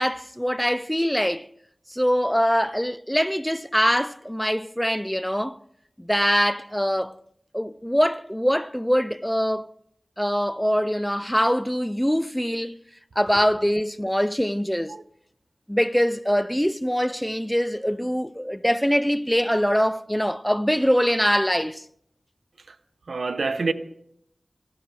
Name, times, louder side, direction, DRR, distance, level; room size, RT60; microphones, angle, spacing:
voice 1, 0.0-1.5 1.9-5.6 6.0-7.2 7.5-9.7 10.2-12.8 13.2-14.9 15.7-21.8, equal, 5° left, 0.5 m, -23 dB
voice 2, 23.1-23.7, right 3 dB, 90° right, 0.9 m, -27 dB
20.0 x 15.5 x 3.4 m
wide cardioid pair, 65°, 0 cm